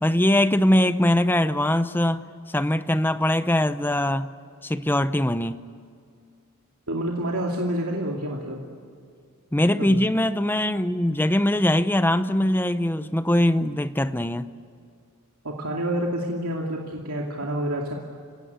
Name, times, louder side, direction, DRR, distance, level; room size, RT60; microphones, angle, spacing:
voice 1, 0.0-2.2 2.5-4.3 4.6-5.6 9.5-14.5, left 1 dB, 10° left, 0.7 m, -22 dB
voice 2, 6.9-8.6 9.8-10.0 15.4-17.9, right 1 dB, 80° right, 2.6 m, -28 dB
29.5 x 17.0 x 9.5 m
head